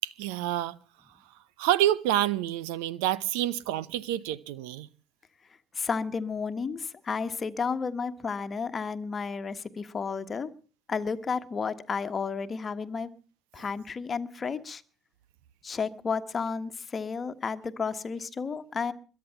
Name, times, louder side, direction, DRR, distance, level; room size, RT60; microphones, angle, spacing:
voice 1, 0.0-0.8 1.6-4.9, right 13 dB, 65° right, 0.7 m, -28 dB
voice 2, 5.7-10.5 10.9-13.1 13.5-14.8 15.6-18.9, left 5 dB, 30° left, 1.4 m, -32 dB
22.5 x 9.5 x 5.8 m
hypercardioid pair, 65°, 0 cm